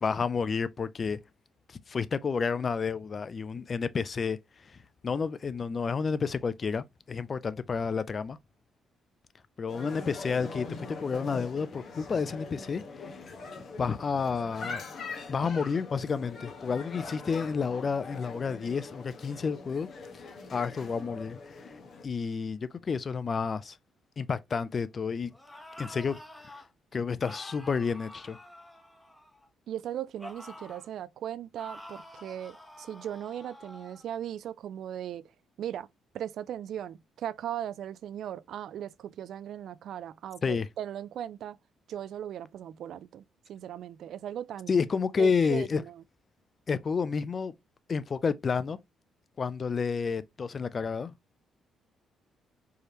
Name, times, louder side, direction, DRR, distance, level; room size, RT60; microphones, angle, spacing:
voice 1, 0.0-1.2 1.7-4.4 5.0-8.4 9.6-13.2 13.8-14.8 15.3-19.9 20.1-20.2 20.5-21.6 22.0-23.8 24.2-25.3 25.8-26.2 26.9-28.4 40.4-40.7 44.7-45.8 46.7-47.5 47.9-48.8 49.4-51.1, left 5 dB, 40° left, 0.5 m, -30 dB
sound 1, 9.7-22.0, left 4 dB, 55° left, 1.4 m, -42 dB
sound 2, 25.3-26.7 27.2-29.5 30.2-30.9 31.6-34.0, left 1 dB, 10° left, 1.3 m, -48 dB
voice 2, 29.7-35.3 35.6-35.9 36.1-41.6 41.9-44.7 45.2-46.0, right 10 dB, 70° right, 0.3 m, -38 dB
4.7 x 3.2 x 2.9 m
cardioid pair, 90°, 0 cm